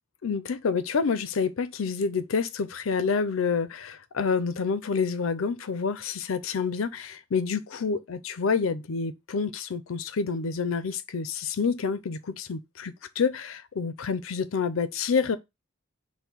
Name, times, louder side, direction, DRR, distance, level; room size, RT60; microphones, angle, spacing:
voice 1, 0.2-15.4, left 5 dB, 80° left, 0.5 m, -28 dB
5.5 x 2.2 x 4.5 m
head